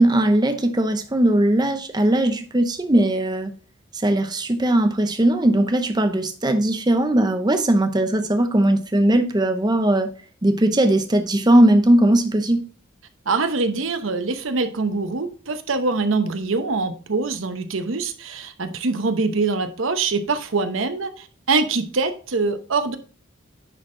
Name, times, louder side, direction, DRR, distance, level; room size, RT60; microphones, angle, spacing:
voice 1, 0.0-3.5 3.9-10.1 10.4-12.6, right 1 dB, 20° right, 0.7 m, -19 dB
voice 2, 13.3-23.0, right 3 dB, 80° right, 0.9 m, -24 dB
10.0 x 4.3 x 3.8 m
head